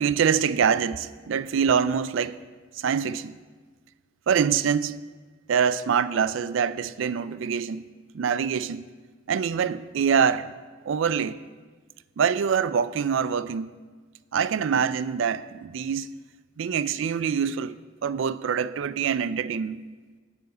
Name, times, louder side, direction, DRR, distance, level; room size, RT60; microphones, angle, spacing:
voice 1, 0.0-2.4 2.7-3.4 4.3-5.0 5.5-7.9 8.1-8.8 9.3-10.5 10.9-11.4 12.2-13.7 14.3-16.1 16.6-19.8, right 7 dB, 75° right, 0.4 m, -25 dB
11.0 x 4.9 x 7.9 m
head